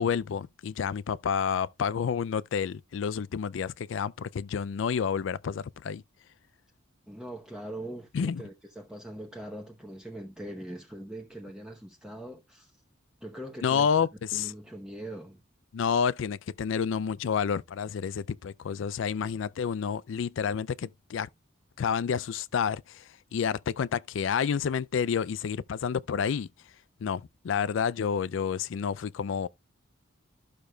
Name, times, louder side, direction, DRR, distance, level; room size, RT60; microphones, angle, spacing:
voice 1, 0.0-6.0 8.1-8.4 13.6-14.5 15.7-21.3 21.8-23.0 23.3-26.5 27.0-29.5, left 7 dB, 70° left, 0.4 m, -29 dB
voice 2, 7.1-12.8 13.2-13.9 14.3-15.4, right 1 dB, 5° right, 0.9 m, -42 dB
12.5 x 6.5 x 2.3 m
head